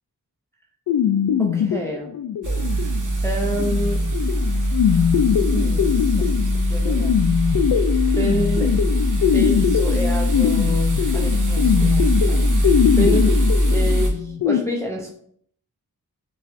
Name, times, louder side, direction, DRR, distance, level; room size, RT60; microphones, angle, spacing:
sound 1, 0.9-14.6, left 8 dB, 65° left, 0.5 m, -22 dB
voice 1, 1.4-2.1 2.6-2.8 3.2-4.0 4.8-5.2 5.5-7.2 8.2-8.7 9.3-13.3 13.7-15.1, equal, 5° left, -1 dB, 0.6 m, -29 dB
sound 2, 2.4-14.1, equal, 50° right, 0.9 m, -21 dB
5.4 x 2.3 x 2.6 m, 0.64 s
cardioid pair, 45°, 39 cm